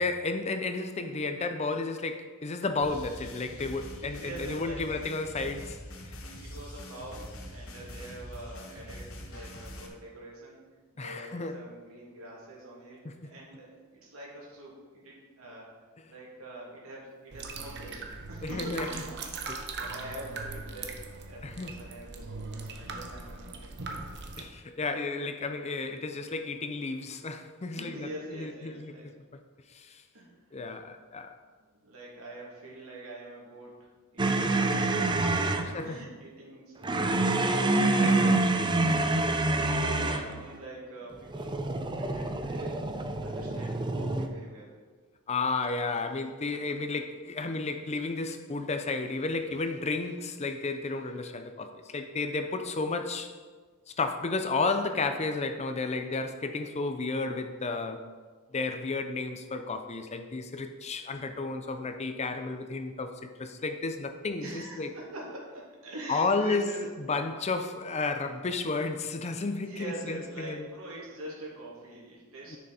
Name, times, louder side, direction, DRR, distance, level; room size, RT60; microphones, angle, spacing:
voice 1, 0.0-5.8 6.1-6.2 11.0-11.6 13.0-13.3 18.4-18.9 19.5-19.6 21.4-21.7 24.4-29.0 29.7-30.0 30.5-31.4 35.6-36.0 38.0-39.2 40.0-40.4 45.3-53.3 54.0-58.0 58.5-64.9 66.1-66.6 67.0-70.7 72.5-72.6, left 3 dB, 30° left, 8 dB, 0.5 m, -32 dB
sound 1, 2.8-9.9, left 1 dB, 65° left, 1.3 m, -44 dB
voice 2, 4.0-4.9 6.3-10.6 10.9-15.7 16.1-18.0 18.3-21.0 21.3-23.7 27.7-29.1 30.1-30.7 31.6-33.7 34.1-38.3 39.2-42.8 43.2-44.7 64.4-66.8 69.6-72.6, right 1 dB, 70° right, -4 dB, 2.8 m, -45 dB
sound 2, 17.3-24.4, right 4 dB, 55° right, 0.9 m, -40 dB
sound 3, 34.2-35.7 36.8-40.3 41.3-44.3, right 2 dB, 20° right, 0.5 m, -27 dB
10.0 x 6.3 x 4.3 m, 1.5 s
head